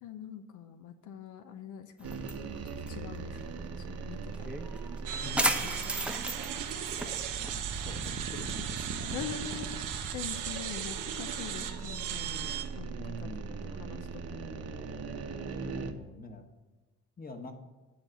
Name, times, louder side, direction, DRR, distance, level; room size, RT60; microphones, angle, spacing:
voice 1, 0.0-2.3 2.6-4.5 5.6-5.8 9.1-12.5 12.8-13.3 13.6-14.8, left 8 dB, 85° left, 8 dB, 0.7 m, -44 dB
sound 1, 2.0-11.7, right 1 dB, 5° right, 0.8 m, -38 dB
sound 2, 2.0-15.9, right 5 dB, 55° right, 0.9 m, -40 dB
sound 3, 5.1-12.6, right 10 dB, 90° right, 1.0 m, -38 dB
voice 2, 5.2-5.8 7.4-9.3 12.9-13.6 15.6-16.5 17.2-17.5, left 2 dB, 30° left, 6 dB, 1.3 m, -45 dB
9.5 x 4.2 x 7.5 m, 1.2 s
cardioid pair, 90°, 30 cm